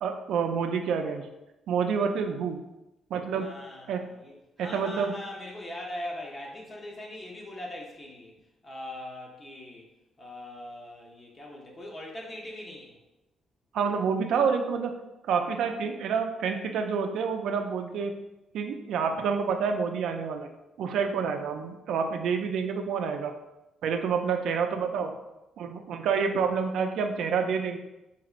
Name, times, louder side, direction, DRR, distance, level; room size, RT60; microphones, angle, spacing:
voice 1, 0.0-1.3 1.7-2.6 3.1-3.5 3.9-4.0 4.6-5.1 13.7-14.9 15.3-18.1 18.5-20.5 20.8-23.3 23.8-25.1 25.6-27.8, right 6 dB, 80° right, 5 dB, 0.3 m, -28 dB
voice 2, 3.4-8.3 8.6-9.9 10.2-13.0, left 1 dB, 30° left, -1 dB, 0.9 m, -41 dB
4.1 x 2.9 x 2.4 m, 0.96 s
cardioid pair, 90°, 0 cm